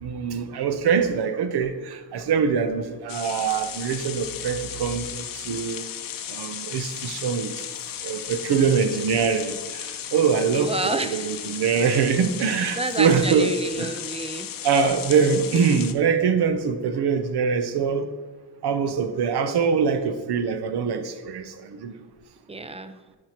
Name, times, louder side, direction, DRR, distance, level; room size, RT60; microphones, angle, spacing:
voice 1, 0.0-5.9 6.3-7.5 8.0-14.0 14.6-18.1 18.6-21.9, right 6 dB, 65° right, 10 dB, 0.8 m, -23 dB
sound 1, 3.1-15.9, left 9 dB, 55° left, 0.6 m, -35 dB
voice 2, 10.5-11.3 12.8-14.5 22.5-23.0, right 3 dB, 15° right, 10 dB, 0.3 m, -29 dB
10.5 x 4.8 x 3.0 m, 1.4 s
cardioid pair, 100°, 42 cm